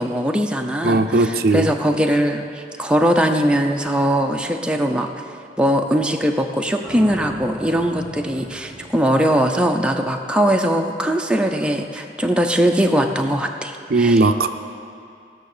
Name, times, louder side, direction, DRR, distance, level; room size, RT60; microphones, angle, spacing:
voice 1, 0.0-5.1 5.6-14.2, equal, 5° right, 3 dB, 0.6 m, -20 dB
voice 2, 0.8-1.7 13.9-14.5, right 3 dB, 60° right, 8 dB, 0.6 m, -17 dB
sound 1, 6.8-10.9, equal, 15° left, 1.9 m, -39 dB
17.5 x 6.3 x 6.7 m, 2.5 s
head